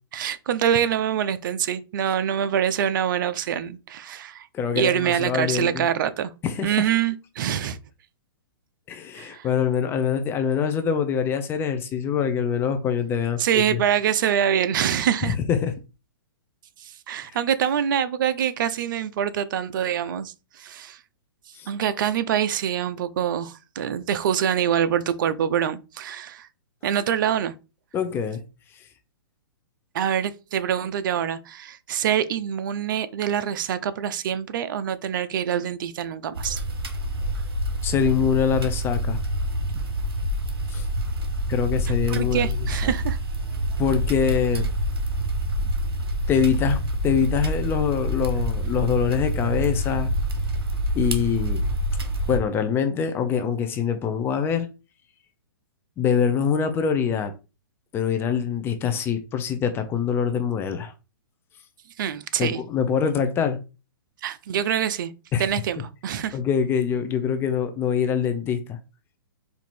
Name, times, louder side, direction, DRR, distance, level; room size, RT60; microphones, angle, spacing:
voice 1, 0.1-4.5 4.7-6.3 6.6-7.8 9.1-9.5 13.4-15.4 16.8-21.0 21.7-26.5 26.8-27.5 29.9-36.6 42.1-43.2 62.0-62.6 64.2-65.1 65.4-66.4, right 9 dB, 55° right, 0.6 m, -25 dB
voice 2, 4.5-5.9 6.4-6.8 8.9-13.8 15.5-15.7 21.5-21.7 27.9-28.4 37.8-39.2 40.7-40.8 41.5-42.5 42.8-42.9 43.8-44.7 46.3-46.8 47.0-50.1 50.9-51.6 52.3-54.7 56.0-57.3 57.9-60.9 62.4-63.6 65.3-65.5 66.3-68.8, left 7 dB, 20° left, 0.6 m, -24 dB
sound 1, 36.4-52.4, right 1 dB, 80° right, 1.2 m, -27 dB
4.5 x 2.7 x 4.2 m
hypercardioid pair, 140°, 13 cm